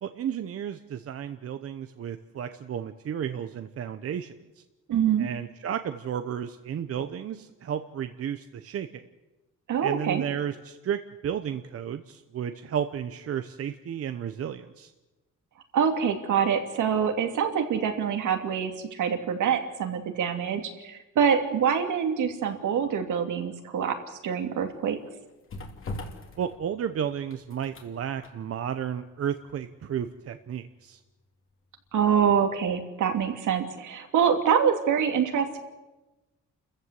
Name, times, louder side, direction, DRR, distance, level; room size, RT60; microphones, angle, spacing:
voice 1, 0.0-4.6 5.2-9.0 9.8-14.9 26.4-31.0, right 9 dB, 50° right, 9 dB, 0.9 m, -33 dB
voice 2, 4.9-5.3 9.7-10.2 15.7-24.0 24.2-25.0 31.9-35.6, right 7 dB, 75° right, 5 dB, 2.8 m, -25 dB
sound 1, 24.2-32.2 32.5-32.7, left 2 dB, 45° left, 2.8 m, -44 dB
29.5 x 14.5 x 8.2 m, 1.1 s
cardioid pair, 160°, 31 cm